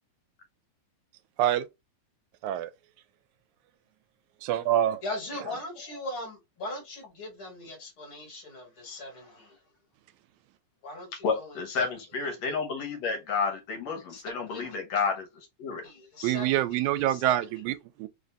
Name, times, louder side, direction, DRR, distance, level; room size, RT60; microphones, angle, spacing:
voice 1, 4.4-5.0 16.2-18.1, right 12 dB, 85° right, 2.0 m, -26 dB
voice 2, 5.0-9.6 10.8-11.6 14.1-14.2 14.5-14.8 15.8-16.8 17.1-17.3, left 1 dB, 50° left, 2.2 m, -40 dB
voice 3, 11.2-15.3 15.6-15.8, left 5 dB, 70° left, 2.1 m, -30 dB
4.6 x 2.6 x 3.3 m
omnidirectional pair, 3.3 m